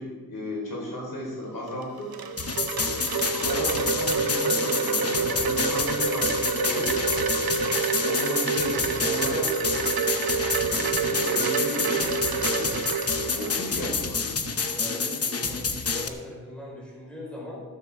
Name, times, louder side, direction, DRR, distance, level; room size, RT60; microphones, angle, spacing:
voice 1, 0.0-2.1 3.1-6.9 7.7-9.9 10.4-12.7 13.3-14.3, left 1 dB, 70° left, -2 dB, 4.5 m, -34 dB
Wind chime, 1.7-13.9, right 5 dB, 75° right, 1.0 m, -28 dB
sound 1, 2.4-16.1, left 4 dB, 40° left, 0.9 m, -29 dB
voice 2, 14.7-17.6, left 1 dB, 5° left, -4 dB, 4.8 m, -40 dB
14.0 x 13.0 x 3.7 m, 1.4 s
wide cardioid pair, 135°, 37 cm